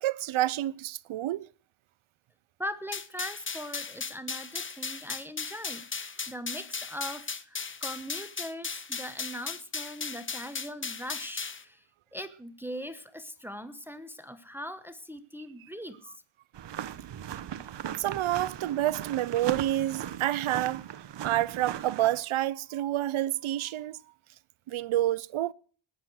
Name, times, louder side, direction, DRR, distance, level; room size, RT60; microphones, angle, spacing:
voice 1, 0.0-1.5 18.0-20.9 21.2-24.0 24.7-25.5, right 14 dB, 85° right, 0.7 m, -28 dB
voice 2, 2.6-11.9 12.1-16.1, equal, 5° right, 1.1 m, -40 dB
sound 1, 2.9-11.6, left 5 dB, 25° left, 0.8 m, -37 dB
sound 2, 16.5-22.2, right 10 dB, 60° right, 0.9 m, -38 dB
19.0 x 7.5 x 6.3 m
wide cardioid pair, 135°, 48 cm